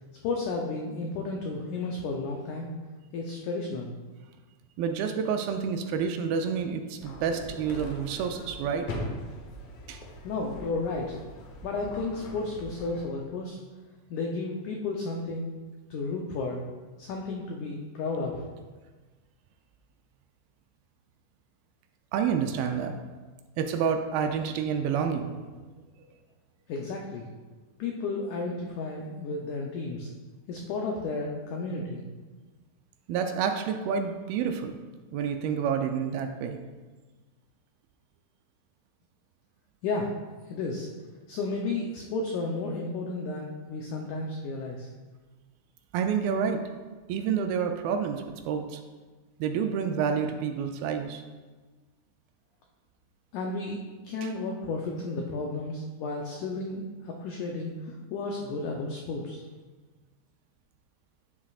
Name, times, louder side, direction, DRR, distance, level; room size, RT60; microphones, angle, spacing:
voice 1, 0.2-2.7 3.1-3.9 10.2-11.2 11.6-13.6 14.1-15.5 15.9-16.6 17.0-18.4 26.7-27.2 27.8-30.1 30.5-32.0 39.8-40.1 40.5-40.9 41.3-44.9 53.3-53.8 54.0-59.4, left 3 dB, 90° left, 0 dB, 1.7 m, -33 dB
voice 2, 4.8-8.9 9.9-10.0 22.1-22.9 23.6-25.7 33.1-34.8 35.1-36.6 45.9-46.6 47.1-48.8 49.4-51.2 54.2-54.3, right 7 dB, 80° right, 6 dB, 2.3 m, -29 dB
sound 1, 7.0-13.0, left 1 dB, 70° left, 2.6 m, -41 dB
9.6 x 7.4 x 2.4 m, 1.3 s
omnidirectional pair, 4.4 m